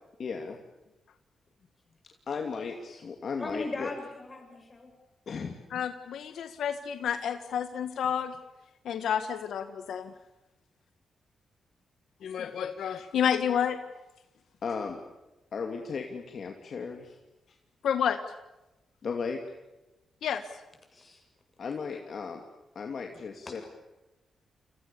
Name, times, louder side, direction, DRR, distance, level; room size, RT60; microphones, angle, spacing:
voice 1, 0.2-0.6 2.3-3.9 5.3-5.5 8.0-8.2 14.6-15.0 15.5-17.2 19.0-19.4 21.6-22.4 22.7-23.6, left 5 dB, 50° left, 3 dB, 2.6 m, -35 dB
voice 2, 3.4-4.9 20.9-21.2 21.9-22.0 23.5-23.6, left 2 dB, 25° left, 3 dB, 7.4 m, -39 dB
voice 3, 5.7-8.3 8.9-10.1 12.2-13.8 17.8-18.2 20.2-20.4, left 8 dB, 80° left, 8 dB, 1.6 m, -30 dB
30.0 x 27.0 x 7.0 m, 1.0 s
wide cardioid pair, 160°, 0 cm